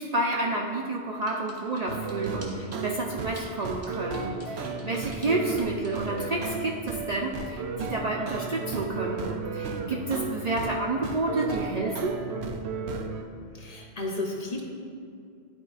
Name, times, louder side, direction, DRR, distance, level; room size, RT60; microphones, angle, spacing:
voice 1, 0.0-12.2, right 2 dB, 55° right, -1 dB, 0.5 m, -30 dB
sound 1, 1.2-2.9 3.4-6.3, equal, 15° right, 0.9 m, -49 dB
sound 2, 1.9-13.2, right 4 dB, 80° right, 0.8 m, -34 dB
voice 2, 13.6-14.6, left 2 dB, 45° left, -1 dB, 0.7 m, -33 dB
11.5 x 4.5 x 2.4 m, 2.3 s
omnidirectional pair, 1.1 m